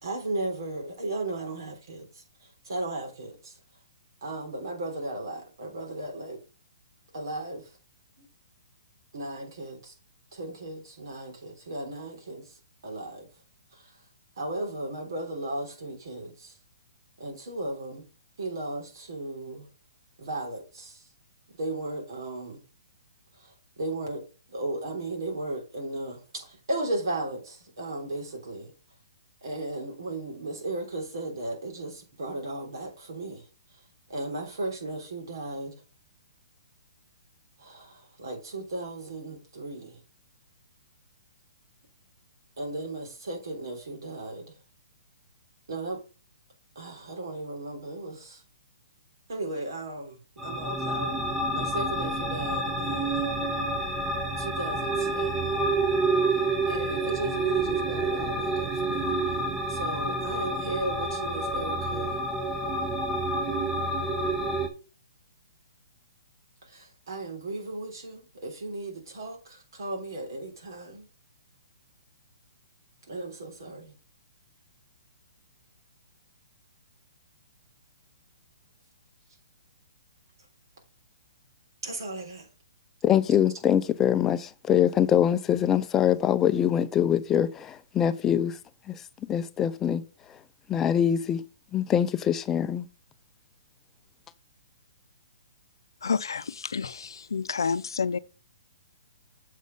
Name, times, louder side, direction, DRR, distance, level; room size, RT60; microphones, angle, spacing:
voice 1, 0.0-3.6 4.2-6.4 7.1-7.7 8.2-8.3 9.1-9.9 10.3-12.6 12.8-13.3 13.7-13.9 14.4-16.6 17.2-18.1 18.4-19.7 20.2-21.0 21.6-22.6 23.3-24.2 24.5-28.7 29.4-33.4 34.1-35.8 37.6-40.0 42.6-44.6 45.7-46.0 46.8-48.4 49.3-51.2 51.5-53.3 54.4-55.6 56.3-56.4 56.7-59.4 59.7-62.2 66.6-71.1 73.1-74.0 81.8-82.5, right 2 dB, 70° right, 3.5 m, -36 dB
sound 1, 50.4-64.7, right 2 dB, 5° right, 0.8 m, -28 dB
voice 2, 83.0-88.6 88.9-89.0 89.3-90.0 90.7-91.4 91.7-92.9, left 9 dB, 15° left, 0.5 m, -24 dB
voice 3, 96.0-98.2, left 5 dB, 90° left, 0.5 m, -29 dB
7.3 x 4.2 x 5.3 m
hypercardioid pair, 150°, 2 cm